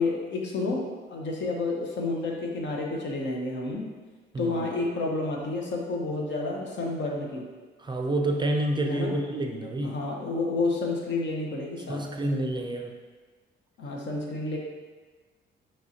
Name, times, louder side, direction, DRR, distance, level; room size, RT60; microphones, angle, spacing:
voice 1, 0.0-3.9 4.4-7.5 8.9-9.2 9.8-12.1 13.8-14.6, left 3 dB, 65° left, 0 dB, 0.9 m, -30 dB
voice 2, 4.3-4.7 7.8-10.0 11.9-12.9, right 1 dB, 25° right, 3 dB, 0.4 m, -28 dB
6.0 x 3.1 x 2.8 m, 1.4 s
cardioid pair, 90°, 20 cm